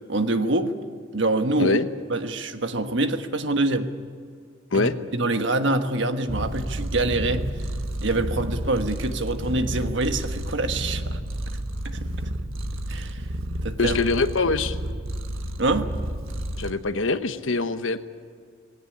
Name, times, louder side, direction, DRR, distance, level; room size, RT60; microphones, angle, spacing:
voice 1, 0.1-0.7 1.1-1.8 2.1-3.9 4.7-7.5 8.0-11.2 11.8-12.0 12.9-13.2 13.5-14.0 15.6-15.9, right 2 dB, 65° right, 8 dB, 1.4 m, -25 dB
Purr, 6.3-16.7, right 1 dB, 90° right, 1.7 m, -31 dB
voice 2, 13.8-14.8 16.6-18.0, left 3 dB, 75° left, 11 dB, 1.1 m, -23 dB
19.5 x 17.5 x 9.9 m, 2.2 s
head